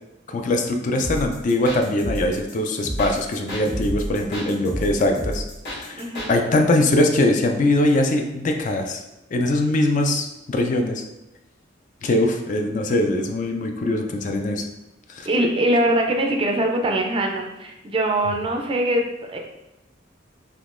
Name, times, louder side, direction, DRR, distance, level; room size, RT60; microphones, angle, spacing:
voice 1, 0.3-5.4 5.7-6.0 6.3-9.0 9.3-11.0 12.0-14.6 15.1-15.3, left 1 dB, 45° left, 4 dB, 0.3 m, -22 dB
sound 1, 1.0-6.3, equal, 60° left, 1.1 m, -30 dB
voice 2, 6.0-6.3 15.3-19.4, right 1 dB, 30° right, 2 dB, 0.4 m, -22 dB
3.6 x 2.8 x 2.5 m, 0.96 s
head